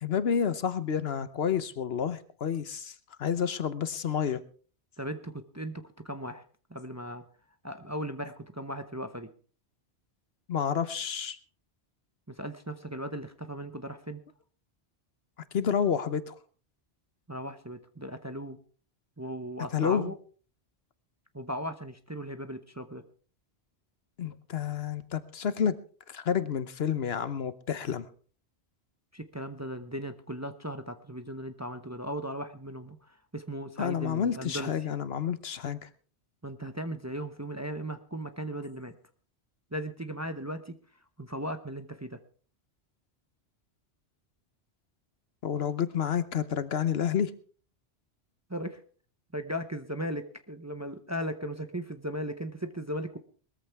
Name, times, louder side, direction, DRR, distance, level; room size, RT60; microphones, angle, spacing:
voice 1, 0.0-4.4 10.5-11.4 15.5-16.3 19.7-20.1 24.2-25.8 26.1-28.1 33.8-35.9 45.4-47.3, left 8 dB, 65° left, 14 dB, 1.1 m, -29 dB
voice 2, 5.0-6.4 6.7-7.2 7.6-9.3 12.3-14.2 17.3-18.6 19.2-20.1 21.3-23.0 29.1-34.9 36.4-38.9 39.7-42.2 48.5-48.8 49.3-53.2, equal, 15° right, 8 dB, 0.7 m, -37 dB
20.0 x 14.0 x 3.5 m, 0.42 s
omnidirectional pair, 1.1 m